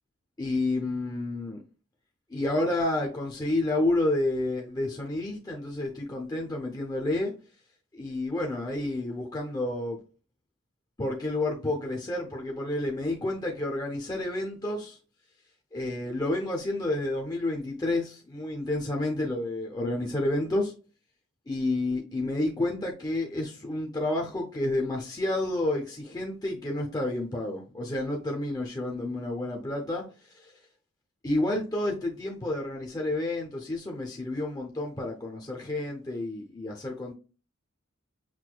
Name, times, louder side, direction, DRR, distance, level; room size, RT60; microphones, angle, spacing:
voice 1, 0.4-1.6 2.3-7.3 7.9-10.0 11.0-15.0 15.7-20.7 21.5-30.0 30.3-30.5 31.2-37.1, left 2 dB, 20° left, 0.6 m, -30 dB
6.0 x 2.6 x 2.2 m
head